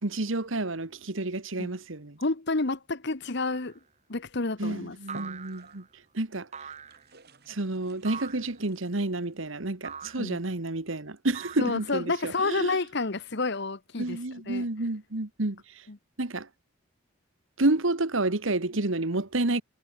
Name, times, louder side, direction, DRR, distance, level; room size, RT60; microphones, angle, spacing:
voice 1, 0.0-2.2 4.6-5.8 6.1-6.5 7.5-12.8 14.0-15.8 16.2-16.5 17.6-19.6, right 2 dB, 70° right, 1.6 m, -30 dB
voice 2, 2.2-3.7 4.1-5.0 10.2-10.4 11.6-14.2 14.5-14.7 15.9-16.0, left 3 dB, 55° left, 1.2 m, -29 dB
sound 1, 3.4-3.8 5.1-5.9 6.5-7.1 8.0-8.6 9.8-10.4 11.3-12.1, right 6 dB, 35° right, 4.6 m, -43 dB
sound 2, 4.4-4.6 5.1-6.1 6.6-9.4, right 2 dB, 50° right, 4.9 m, -53 dB
head